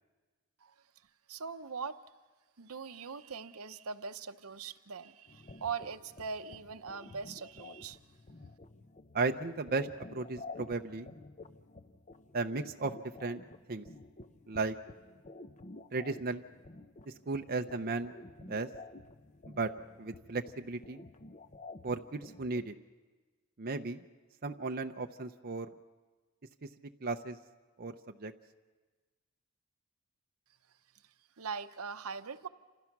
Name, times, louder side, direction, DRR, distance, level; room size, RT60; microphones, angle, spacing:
voice 1, 1.3-2.0 2.6-8.0 31.4-32.5, right 5 dB, 70° right, 10 dB, 0.8 m, -41 dB
sound 1, 5.3-22.6, left 3 dB, 35° left, 0.7 m, -51 dB
voice 2, 9.1-11.1 12.3-12.9 13.2-13.4 13.7-13.8 14.5-14.7 15.9-16.4 17.1-18.1 18.4-18.7 19.5-19.7 20.0-21.0 21.8-22.7 23.6-24.1 24.4-25.7 26.6-26.7 27.0-27.4 27.8-28.3, right 3 dB, 40° right, 5 dB, 0.7 m, -35 dB
28.5 x 27.0 x 6.0 m, 1.3 s
head